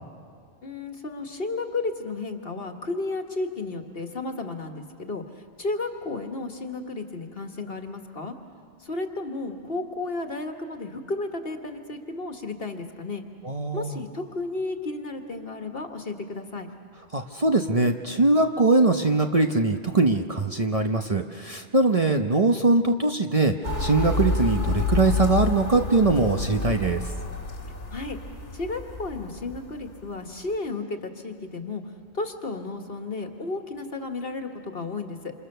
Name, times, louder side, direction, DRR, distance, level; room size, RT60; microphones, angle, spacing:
voice 1, 0.6-8.3 8.8-13.2 13.7-16.7 27.9-28.2 28.5-31.8 32.1-35.3, left 3 dB, 55° left, 4 dB, 1.9 m, -33 dB
voice 2, 13.4-14.0 17.1-27.0, right 3 dB, 35° right, 4 dB, 1.0 m, -22 dB
sound 1, 23.6-30.1, left 3 dB, 90° left, 2.7 m, -29 dB
28.0 x 27.5 x 6.8 m, 2.2 s
omnidirectional pair, 1.2 m